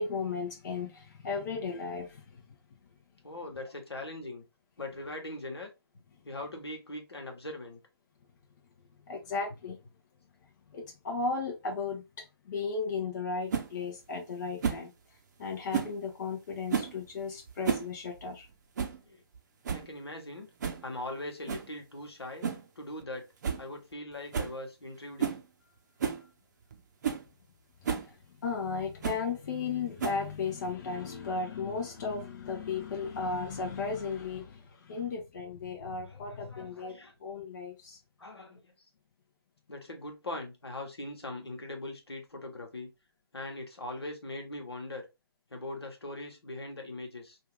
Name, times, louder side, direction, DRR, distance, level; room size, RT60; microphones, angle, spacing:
voice 1, 0.0-2.6 9.1-9.8 10.7-14.9 15.4-18.5 28.0-28.2 28.4-38.0, left 4 dB, 45° left, 0.6 m, -35 dB
voice 2, 3.2-4.4 4.8-5.7 6.2-7.8 9.5-9.8 19.0-19.2 19.7-20.5 20.8-22.5 22.7-23.3 23.6-25.4 36.1-37.1 38.2-38.7 39.7-42.9 43.3-45.1 45.5-47.4, left 2 dB, 80° left, 1.1 m, -41 dB
sound 1, 13.5-13.7 14.6-14.9 15.7-16.0 16.7-17.0 17.5-17.9 18.2-18.3 18.8-19.0 19.3-19.4 19.6-19.9 20.6-20.8 21.5-21.7 22.4-22.7 23.0-23.1 23.4-23.6 23.9-24.0 24.3-24.6 25.2-25.4 26.0-26.2 26.7-26.8 27.0-27.2 27.8-28.1 29.0-29.2 30.0-30.4, right 7 dB, 45° right, 0.6 m, -31 dB
2.7 x 2.4 x 3.2 m
figure-of-eight pair, 135°, 13 cm